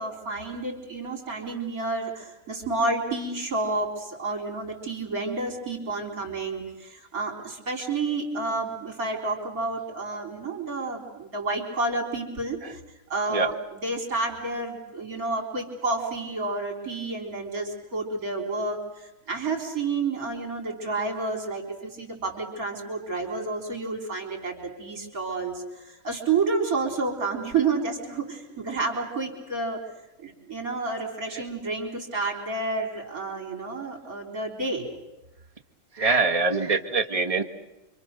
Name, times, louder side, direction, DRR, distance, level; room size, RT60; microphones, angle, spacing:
voice 1, 0.0-12.8 13.1-13.5 13.8-29.8 30.2-34.9, right 3 dB, 55° right, 4 dB, 4.6 m, -30 dB
voice 2, 35.9-37.4, right 3 dB, 20° right, 3 dB, 1.7 m, -24 dB
29.0 x 25.0 x 6.7 m, 0.98 s
omnidirectional pair, 1.8 m